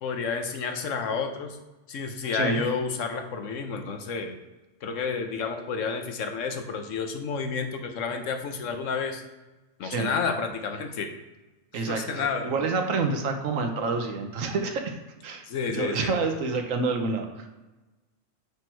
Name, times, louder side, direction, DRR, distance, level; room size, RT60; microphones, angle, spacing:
voice 1, 0.0-1.6 1.9-4.4 4.8-9.2 9.8-11.1 11.7-12.5 15.5-16.1, left 5 dB, 80° left, 6 dB, 1.2 m, -30 dB
voice 2, 11.7-14.9 15.2-17.5, right 4 dB, 85° right, 5 dB, 1.3 m, -28 dB
6.1 x 5.1 x 4.5 m, 1.1 s
omnidirectional pair, 1.3 m